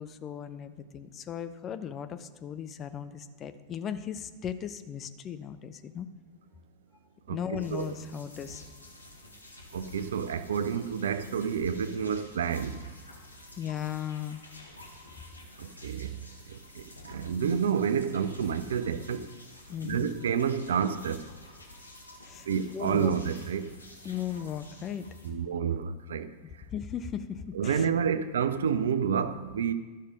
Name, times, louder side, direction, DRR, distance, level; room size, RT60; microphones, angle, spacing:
voice 1, 0.0-6.1 7.3-8.6 13.6-14.4 19.7-20.1 22.2-23.2 24.0-25.0 26.7-27.9 28.1-28.2, left 9 dB, 30° left, 0.7 m, -37 dB
voice 2, 7.3-7.9 9.7-12.8 15.6-16.1 16.5-19.2 19.8-21.2 22.5-23.7 25.2-26.3 27.5-29.7, right 7 dB, 65° right, 0.5 m, -29 dB
sound 1, 7.6-25.3, left 2 dB, 80° left, 1.6 m, -51 dB
12.5 x 6.4 x 5.2 m
figure-of-eight pair, 90°, 0 cm